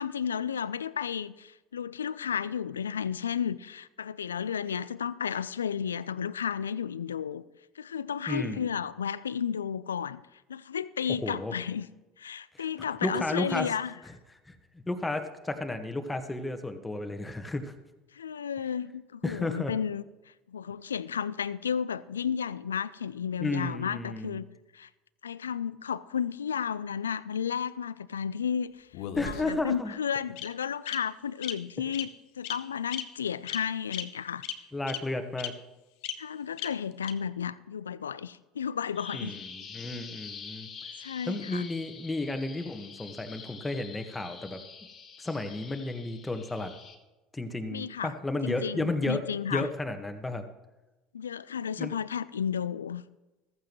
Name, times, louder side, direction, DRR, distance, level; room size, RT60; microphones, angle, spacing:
voice 1, 0.0-7.4 7.8-11.9 12.2-13.9 18.1-24.5 24.7-24.9 25.2-28.9 29.2-34.4 34.9-35.0 36.2-39.4 41.0-41.7 47.7-48.1 48.4-49.7 51.1-53.0, left 7 dB, 85° left, 0.4 m, -33 dB
voice 2, 8.3-8.6 11.2-11.5 12.5-12.6 13.0-13.7 14.5-14.6 14.8-17.7 19.2-19.7 23.4-24.3 29.2-29.9 34.7-35.5 39.1-39.4 39.7-40.7 41.3-44.6 45.2-46.7 47.3-49.2 49.5-50.4 51.8-51.9, left 2 dB, 10° left, 1.6 m, -32 dB
Bird vocalization bird call bird song, 28.9-29.7 30.4-30.5 30.9-31.0 31.4-31.5 31.9-32.1 32.4-32.6 32.9-33.0 33.5-33.6 33.9-34.0 34.4-34.5 34.9-35.0 35.4-35.5 36.0-36.1 36.6-36.7 37.0-37.1, left 15 dB, 65° left, 0.9 m, -35 dB
Bird vocalization bird call bird song 2, 38.9-46.9, left 6 dB, 40° left, 1.7 m, -46 dB
15.0 x 14.5 x 3.2 m
hypercardioid pair, 70°, 0 cm